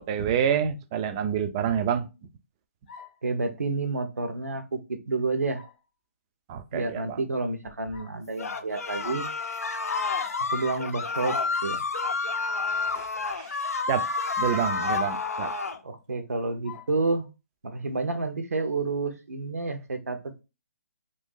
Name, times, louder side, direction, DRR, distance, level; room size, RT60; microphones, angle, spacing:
voice 1, 0.0-2.1 6.5-7.2 13.0-14.1 14.4-15.5, right 8 dB, 25° right, 0.4 m, -28 dB
sound 1, 2.9-3.3 5.6-5.9 7.6-8.3 10.1-10.9 12.4-12.8 14.1-14.3 14.9-15.0 16.6-17.0, left 6 dB, 35° left, 0.6 m, -47 dB
voice 2, 3.2-5.6 6.7-9.3 10.4-11.4 11.6-11.8 15.8-17.3 17.6-20.4, right 3 dB, 90° right, 0.8 m, -29 dB
sound 2, 8.4-15.8, left 4 dB, 85° left, 0.5 m, -29 dB
2.7 x 2.6 x 3.7 m
hypercardioid pair, 155°, 8 cm